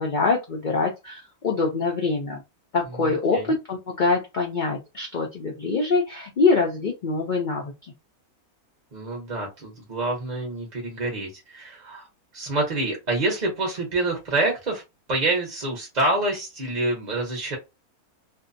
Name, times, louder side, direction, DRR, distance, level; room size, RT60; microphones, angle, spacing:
voice 1, 0.0-2.4 2.7-7.9, left 4 dB, 80° left, 0 dB, 0.4 m, -24 dB
voice 2, 3.0-3.5 8.9-12.1 12.3-14.8 15.1-17.6, right 2 dB, 40° right, -1 dB, 0.7 m, -27 dB
2.6 x 2.1 x 2.5 m, 0.23 s
omnidirectional pair, 1.6 m